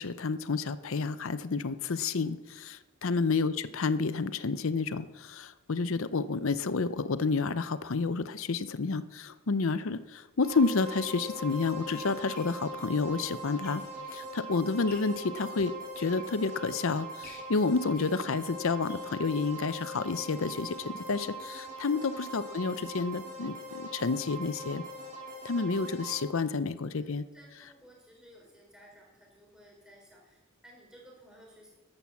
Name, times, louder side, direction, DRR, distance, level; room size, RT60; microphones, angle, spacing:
voice 1, 0.0-13.8 14.1-24.8 25.4-27.3, left 4 dB, 65° left, 14 dB, 0.6 m, -30 dB
voice 2, 3.0-3.4 22.0-22.3 26.8-31.7, equal, 5° right, -1 dB, 4.1 m, -57 dB
sound 1, 10.3-10.4 11.2-14.2 14.6-15.3 15.8-16.8 17.2-19.7 20.1-20.2 20.5-20.6 20.9-21.0, left 3 dB, 45° left, 2.8 m, -55 dB
sound 2, 10.4-26.2, right 1 dB, 35° right, 4.3 m, -41 dB
13.0 x 11.0 x 7.1 m, 1.1 s
head